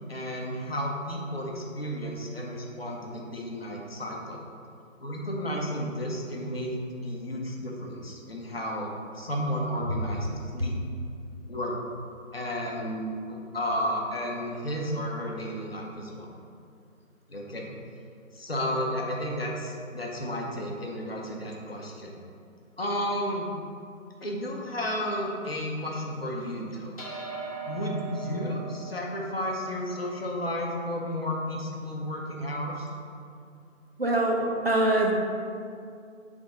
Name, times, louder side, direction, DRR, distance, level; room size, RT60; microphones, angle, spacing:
voice 1, 0.1-4.4 5.0-6.8 7.0-10.8 11.5-11.8 12.3-16.3 17.3-17.7 18.3-22.1 22.8-23.5 24.2-26.9 27.6-32.9, equal, 45° left, -1 dB, 0.9 m, -32 dB
sound 1, 27.0-31.6, right 4 dB, 25° left, 1.1 m, -41 dB
voice 2, 34.0-35.1, right 2 dB, 45° right, 0 dB, 0.7 m, -24 dB
6.4 x 3.6 x 5.0 m, 2.4 s
hypercardioid pair, 180°, 41 cm